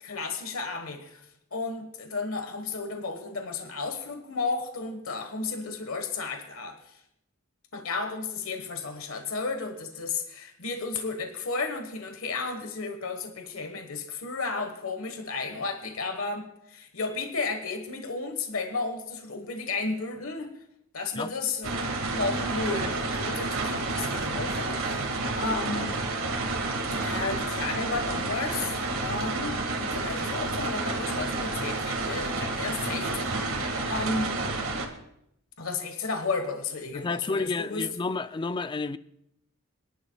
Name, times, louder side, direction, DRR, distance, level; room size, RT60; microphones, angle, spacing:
voice 1, 0.0-1.2 1.5-7.0 7.7-20.5 20.9-25.1 25.4-26.0 27.0-34.3 35.6-37.9, left 3 dB, 75° left, 1.3 m, -33 dB
sound 1, 21.6-34.9, right 2 dB, 75° right, 1.8 m, -30 dB
voice 2, 36.9-39.0, left 3 dB, 20° left, 0.4 m, -30 dB
26.0 x 11.0 x 2.3 m
head